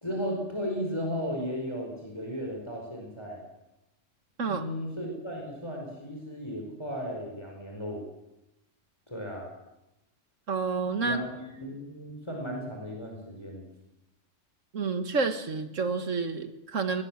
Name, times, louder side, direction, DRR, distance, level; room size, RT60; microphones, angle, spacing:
voice 1, 0.0-3.4 4.5-8.0 9.1-9.5 11.0-13.7, equal, 20° left, 0 dB, 4.9 m, -35 dB
voice 2, 10.5-11.2 14.7-17.0, right 4 dB, 85° right, 8 dB, 2.1 m, -29 dB
21.5 x 19.5 x 7.6 m, 0.93 s
omnidirectional pair, 1.3 m